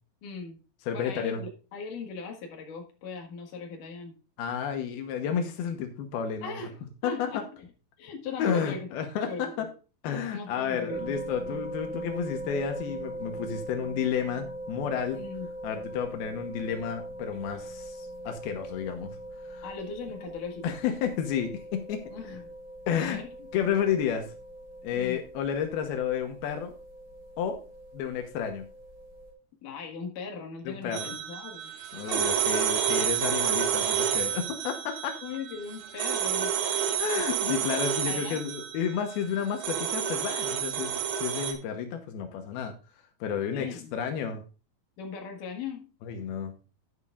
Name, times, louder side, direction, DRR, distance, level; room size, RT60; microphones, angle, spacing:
voice 1, 0.2-0.6 0.9-4.1 6.4-6.8 7.0-7.7 8.0-8.9 9.3-9.7 10.3-11.1 15.1-15.5 19.6-20.8 22.1-22.4 22.9-23.3 24.9-25.2 29.6-31.7 32.0-32.3 35.2-36.5 38.1-38.5 43.5-43.9 45.0-45.9, left 5 dB, 65° left, 2 dB, 3.3 m, -39 dB
voice 2, 0.9-1.4 4.4-6.6 7.0-7.4 8.4-9.7 10.0-15.2 15.6-19.2 19.5-19.6 20.6-22.0 22.9-23.2 23.5-24.3 24.8-26.7 27.4-27.6 27.9-28.7 30.7-31.1 31.9-35.2 37.0-42.7 43.2-44.4 46.0-46.5, left 7 dB, 85° left, 5 dB, 3.0 m, -31 dB
sound 1, 10.9-29.3, right 1 dB, 60° right, 5.8 m, -41 dB
sound 2, 30.9-41.5, right 9 dB, 85° right, 3.2 m, -29 dB
11.0 x 10.5 x 2.5 m, 0.34 s
omnidirectional pair, 4.2 m